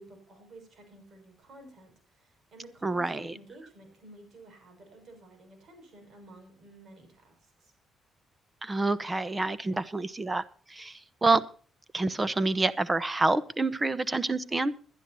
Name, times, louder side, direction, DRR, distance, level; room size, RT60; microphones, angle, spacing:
voice 1, 0.0-7.7, right 1 dB, 60° right, 5 dB, 6.1 m, -52 dB
voice 2, 2.8-3.3 8.6-10.4 10.7-11.4 11.9-14.7, right 3 dB, 20° right, 17 dB, 1.0 m, -27 dB
21.5 x 11.5 x 2.8 m, 0.43 s
cardioid pair, 90°, 0 cm